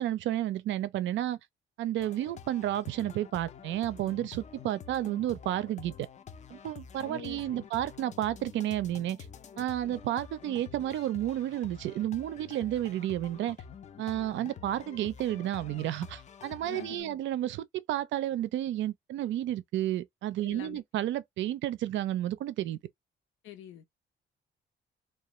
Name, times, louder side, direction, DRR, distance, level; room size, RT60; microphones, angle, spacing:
voice 1, 0.0-1.4 1.8-5.9 6.5-9.2 9.6-13.6 14.0-22.8, right 13 dB, 70° right, 0.4 m, -31 dB
sound 1, 2.0-17.0, left 7 dB, 35° left, 0.4 m, -48 dB
voice 2, 7.0-7.7 16.6-17.2 20.4-20.8 23.4-23.8, left 11 dB, 80° left, 0.7 m, -46 dB
2.3 x 2.2 x 3.0 m
cardioid pair, 90°, 20 cm